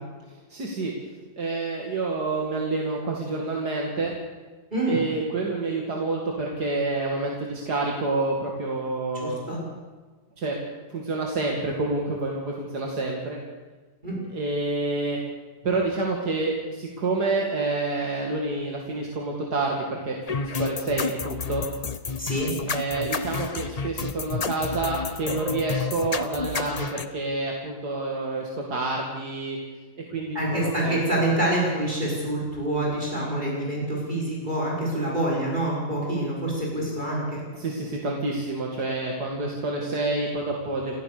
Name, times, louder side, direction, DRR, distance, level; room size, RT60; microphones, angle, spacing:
voice 1, 0.5-0.9 1.4-4.1 4.9-9.4 10.4-10.6 10.9-13.4 14.3-15.2 15.6-21.7 22.7-29.6 30.1-31.0 37.5-41.0, right 2 dB, 75° right, -1 dB, 2.9 m, -28 dB
voice 2, 4.7-5.0 9.1-9.6 14.0-14.2 22.2-22.5 30.3-37.4 39.3-39.5, right 1 dB, 30° right, -3 dB, 5.8 m, -26 dB
sound 1, 20.3-27.1, left 5 dB, 35° left, 0.7 m, -31 dB
28.5 x 15.5 x 6.8 m, 1.3 s
omnidirectional pair, 1.7 m